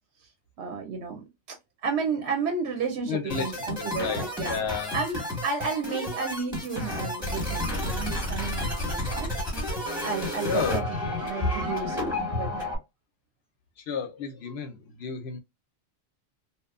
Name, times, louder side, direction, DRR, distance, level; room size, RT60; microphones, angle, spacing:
voice 1, 0.6-1.6 1.8-4.6 4.9-9.3 9.7-12.7, right 5 dB, 65° right, 0.8 m, -32 dB
voice 2, 3.1-3.5 3.8-4.9 10.2-10.9 13.8-15.4, left 6 dB, 65° left, 0.7 m, -32 dB
sound 1, 3.3-12.8, left 1 dB, 5° right, 0.9 m, -31 dB
2.8 x 2.1 x 2.3 m
omnidirectional pair, 1.3 m